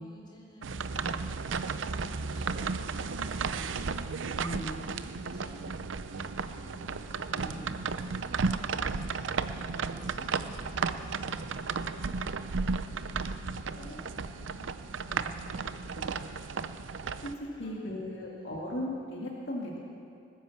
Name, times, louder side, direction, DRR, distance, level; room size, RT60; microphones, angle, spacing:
voice 1, 0.0-4.2 4.6-15.8 17.5-18.7, equal, 25° left, -4 dB, 3.8 m, -51 dB
sound 1, 0.6-17.3, right 4 dB, 85° right, 0.6 m, -34 dB
voice 2, 4.3-4.8 7.3-7.6 13.8-14.0 16.0-16.3 17.2-19.8, left 1 dB, 65° left, -3 dB, 2.1 m, -38 dB
19.5 x 10.0 x 7.2 m, 2.5 s
head